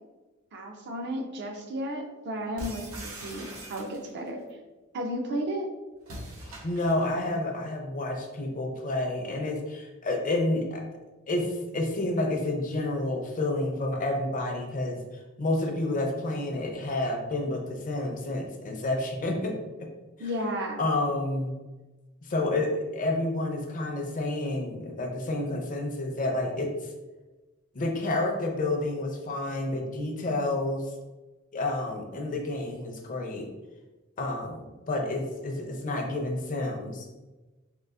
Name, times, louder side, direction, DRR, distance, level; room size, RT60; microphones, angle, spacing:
voice 1, 0.5-4.4 4.9-5.7 20.2-20.8, equal, 55° right, 3 dB, 0.5 m, -33 dB
sound 1, 2.6-4.3 6.0-7.2, right 1 dB, 90° right, 0.8 m, -41 dB
voice 2, 6.6-10.8 11.3-15.0 15.4-19.5 20.8-21.5 22.3-26.7 27.7-30.9 31.5-33.5 34.2-37.1, left 2 dB, 40° left, 2 dB, 0.5 m, -29 dB
3.7 x 2.4 x 2.3 m, 1.1 s
head